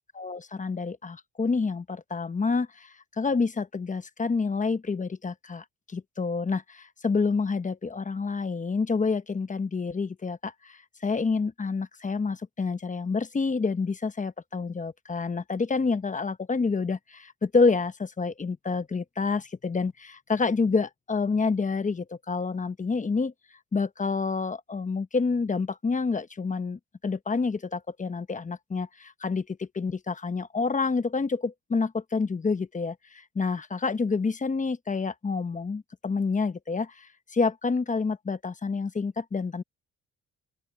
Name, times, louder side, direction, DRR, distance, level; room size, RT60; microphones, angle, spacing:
voice 1, 0.0-23.3 23.7-37.1 37.3-39.6, left 4 dB, 25° left, 1.1 m, -28 dB
open air
cardioid pair, 90°, 30 cm